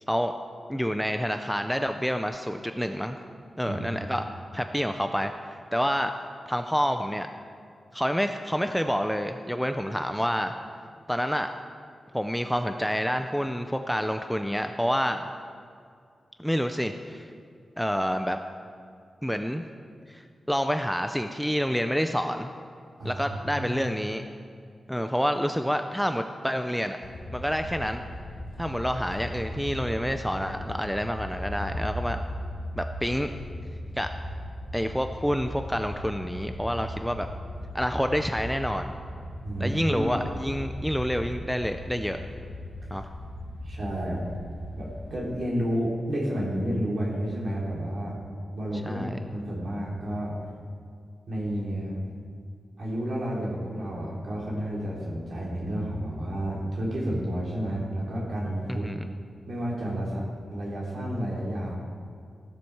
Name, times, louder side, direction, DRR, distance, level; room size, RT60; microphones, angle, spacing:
voice 1, 0.7-3.2 3.6-4.2 4.5-6.1 6.5-7.3 7.9-10.5 11.1-11.5 12.1-15.3 16.4-17.3 17.8-18.4 19.2-19.6 20.1-22.5 23.0-24.2 24.9-27.0 27.3-28.0 28.6-32.2 32.7-33.3 33.9-34.1 34.7-37.3 37.7-38.9 39.6-42.2 42.9-43.1 48.8-49.2 58.7-59.1, equal, ahead, 6 dB, 0.4 m, -28 dB
voice 2, 3.6-4.1 23.0-23.7 39.4-40.1 43.6-44.2 44.7-48.2 48.5-49.0 49.3-50.3 51.3-52.0 52.8-58.9 59.4-61.7, equal, 50° right, -4 dB, 3.3 m, -31 dB
sound 1, 27.0-45.2, left 1 dB, 90° left, 1.7 m, -37 dB
16.0 x 11.5 x 4.7 m, 2.2 s
wide cardioid pair, 180°, 0 cm